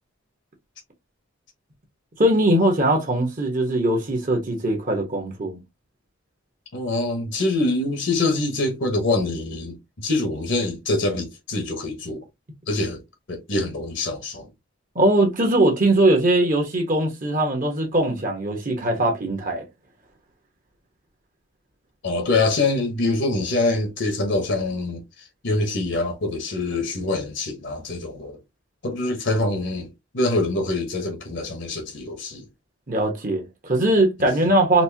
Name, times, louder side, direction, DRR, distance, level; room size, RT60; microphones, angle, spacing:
voice 1, 2.2-5.6 14.9-19.6 32.9-34.8, right 1 dB, 40° right, 1.1 m, -20 dB
voice 2, 6.7-12.2 12.7-13.0 13.3-14.5 22.0-25.0 25.4-28.4 28.8-29.9 30.1-32.4 34.2-34.3, left 2 dB, 55° left, 1.1 m, -24 dB
4.2 x 2.7 x 2.7 m
head